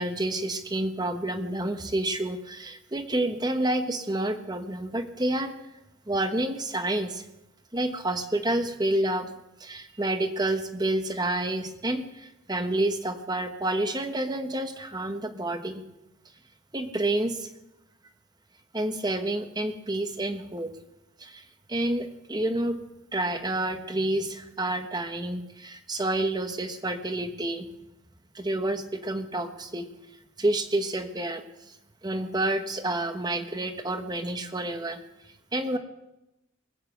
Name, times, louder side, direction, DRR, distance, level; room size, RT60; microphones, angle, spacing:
voice 1, 0.0-5.6 6.1-7.2 7.7-9.3 9.6-15.9 16.7-17.5 18.7-20.7 21.2-22.8 23.1-27.7 28.3-29.9 30.4-31.8 32.0-35.0 35.5-35.8, right 1 dB, 20° right, 8 dB, 1.1 m, -29 dB
20.5 x 7.7 x 7.9 m, 0.91 s
head